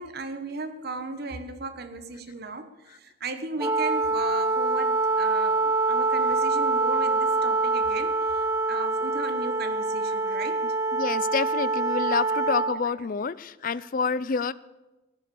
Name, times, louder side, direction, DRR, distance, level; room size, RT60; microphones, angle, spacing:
voice 1, 0.0-10.7, right 3 dB, 50° right, 9 dB, 1.1 m, -36 dB
Wind instrument woodwind instrument, 3.6-12.8, right 3 dB, 15° right, 0.7 m, -25 dB
voice 2, 10.9-14.5, left 5 dB, 40° left, 17 dB, 0.4 m, -28 dB
17.0 x 10.5 x 7.0 m, 1.1 s
head